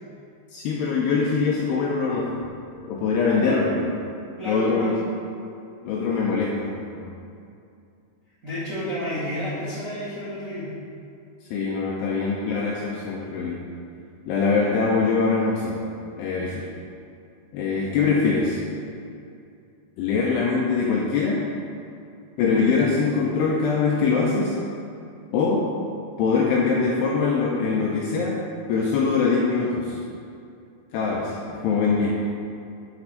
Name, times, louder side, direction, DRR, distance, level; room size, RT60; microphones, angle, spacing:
voice 1, 0.5-2.3 2.8-3.9 4.5-4.9 5.8-7.1 11.5-13.6 14.3-15.8 16.2-16.7 17.5-18.6 20.0-21.4 22.4-24.6 25.3-25.7 26.2-28.4 28.7-30.0 30.9-32.2, left 4 dB, 85° left, -3 dB, 2.4 m, -23 dB
voice 2, 4.4-5.0 8.4-10.7, equal, 40° right, -12 dB, 1.2 m, -30 dB
7.1 x 6.3 x 5.7 m, 2.5 s
omnidirectional pair, 5.5 m